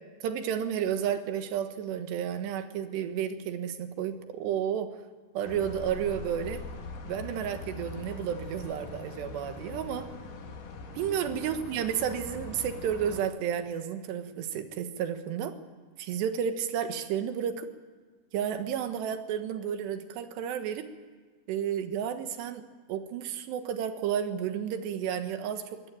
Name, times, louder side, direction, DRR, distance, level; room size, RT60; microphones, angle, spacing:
voice 1, 0.2-4.9 5.3-6.6 7.1-10.1 10.9-15.5 16.0-17.7 18.3-20.9 21.5-22.6 22.9-25.9, right 9 dB, 75° right, 8 dB, 3.4 m, -32 dB
sound 1, 5.4-13.2, left 3 dB, 55° left, 3.1 m, -42 dB
22.5 x 17.5 x 9.0 m, 1.5 s
omnidirectional pair, 5.1 m